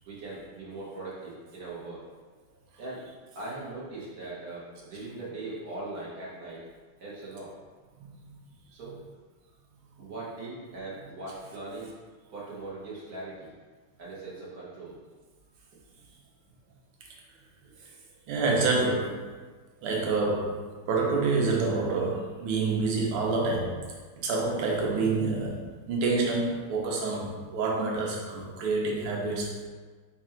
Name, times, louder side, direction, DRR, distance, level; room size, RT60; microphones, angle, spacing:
voice 1, 0.1-2.0 2.8-3.0 3.3-6.6 7.0-7.5 8.7-9.0 10.0-11.9 12.3-13.5 14.0-15.0, right 2 dB, 55° right, -7 dB, 1.2 m, -40 dB
voice 2, 18.3-19.2 19.8-20.6 20.9-23.8 24.2-25.6 25.9-29.5, right 3 dB, 75° right, -1 dB, 1.6 m, -27 dB
4.7 x 2.5 x 4.3 m, 1.4 s
omnidirectional pair, 2.4 m